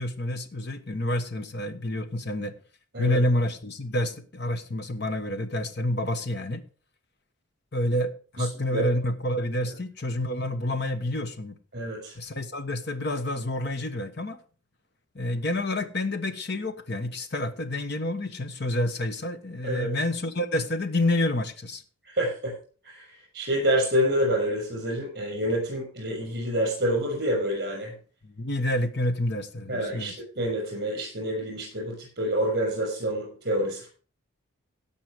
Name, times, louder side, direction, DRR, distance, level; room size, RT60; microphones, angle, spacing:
voice 1, 0.0-2.6 3.0-6.6 7.7-11.5 12.1-14.4 15.1-21.8 28.2-30.1, left 1 dB, 50° left, 1.3 m, -28 dB
voice 2, 11.7-12.1 19.6-19.9 22.0-22.5 22.8-23.1 23.3-27.9 29.7-33.9, equal, 50° right, 6.6 m, -27 dB
17.0 x 6.1 x 5.0 m
head